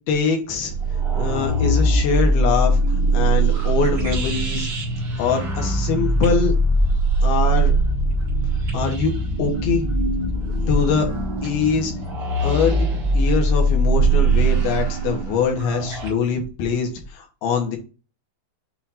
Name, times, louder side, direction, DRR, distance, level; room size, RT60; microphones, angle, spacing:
voice 1, 0.1-0.7 1.1-2.8 3.1-4.7 5.2-6.5 7.2-7.7 8.7-9.1 9.4-9.9 10.6-11.1 11.4-11.9 12.4-12.9 13.1-17.8, left 5 dB, 85° left, 2 dB, 3.3 m, -23 dB
sound 1, 0.7-16.1, right 2 dB, 55° right, 1.1 m, -21 dB
8.3 x 2.8 x 4.2 m, 0.33 s
omnidirectional pair, 4.3 m